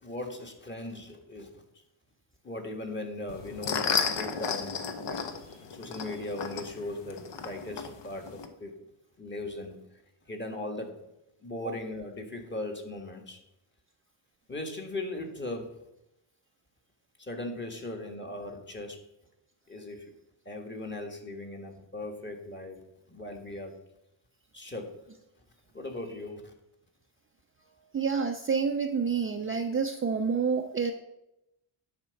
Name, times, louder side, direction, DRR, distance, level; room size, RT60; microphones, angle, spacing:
voice 1, 0.0-1.6 2.4-5.2 5.7-8.7 9.2-9.8 10.3-11.0 11.4-13.4 14.5-15.8 17.2-19.0 19.7-20.1 20.4-22.8 23.1-23.8 24.5-24.9 25.7-26.5, left 2 dB, 20° left, 3 dB, 1.6 m, -38 dB
sound 1, 3.3-8.5, left 6 dB, 60° left, 1.1 m, -33 dB
voice 2, 27.9-30.9, right 5 dB, 25° right, 4 dB, 0.5 m, -28 dB
10.0 x 4.4 x 7.0 m, 0.88 s
cardioid pair, 130°, 49 cm